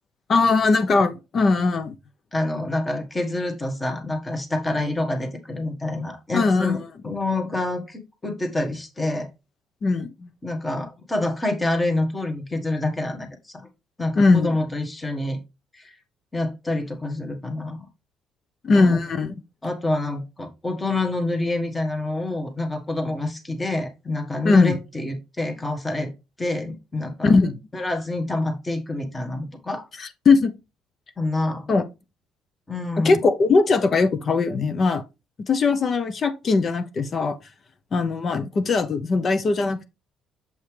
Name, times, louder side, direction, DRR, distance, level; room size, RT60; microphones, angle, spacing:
voice 1, 0.3-2.0 6.3-6.8 9.8-10.3 14.2-14.5 18.6-19.3 24.4-24.8 27.2-27.6 30.0-30.5 31.7-31.8 33.0-35.0 35.4-37.4 37.9-39.8, left 4 dB, 35° left, 0.6 m, -20 dB
voice 2, 2.3-6.8 7.0-9.3 10.4-13.6 14.0-15.4 15.7-15.9 16.3-17.8 18.7-19.0 19.6-26.1 26.4-27.3 27.7-29.9 31.2-31.7 32.7-33.2, left 2 dB, 15° left, 1.3 m, -27 dB
7.1 x 5.3 x 3.2 m
cardioid pair, 150°, 0 cm